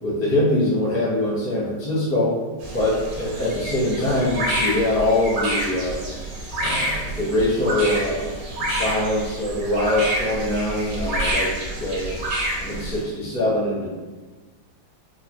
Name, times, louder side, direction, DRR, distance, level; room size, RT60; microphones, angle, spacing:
voice 1, 0.0-2.3 2.7-6.0 6.6-11.5 11.8-12.1 12.6-13.9, left 1 dB, 15° left, -7 dB, 0.5 m, -23 dB
sound 1, 2.6-13.0, right 1 dB, 65° right, 1.2 m, -28 dB
4.5 x 2.0 x 3.1 m, 1.3 s
omnidirectional pair, 2.1 m